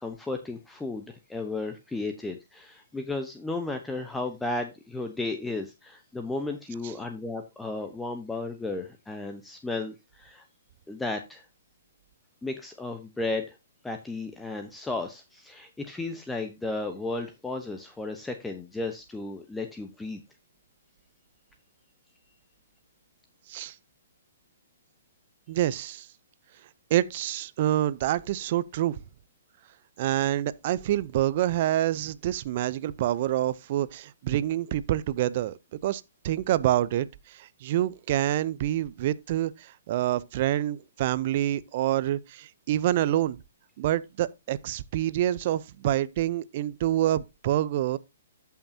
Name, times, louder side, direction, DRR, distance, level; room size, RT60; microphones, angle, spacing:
voice 1, 0.0-10.4 10.9-11.4 12.4-13.6 13.8-20.2, left 2 dB, 5° left, 0.9 m, -34 dB
voice 2, 25.5-26.1 26.9-29.0 30.0-35.5 35.8-37.1 37.6-39.5 39.9-43.4 43.8-48.0, right 13 dB, 50° right, 0.6 m, -27 dB
13.0 x 5.8 x 2.8 m
hypercardioid pair, 130°, 0 cm